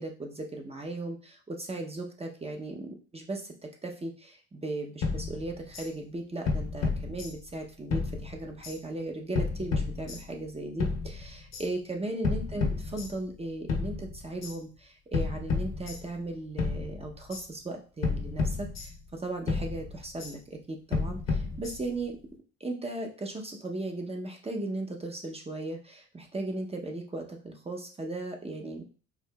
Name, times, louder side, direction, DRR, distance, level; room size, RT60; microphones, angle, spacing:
voice 1, 0.0-3.5 3.8-22.2 22.6-28.8, right 2 dB, 20° right, 1 dB, 0.7 m, -37 dB
sound 1, 5.0-5.9 6.5-7.6 7.9-8.8 9.3-10.4 10.8-11.7 12.2-13.4 13.7-14.6 15.1-16.3 16.6-17.4 18.0-19.2 19.5-20.3 20.9-22.1, left 4 dB, 60° left, 0.9 m, -32 dB
4.7 x 2.6 x 2.3 m, 0.37 s
cardioid pair, 90°, 30 cm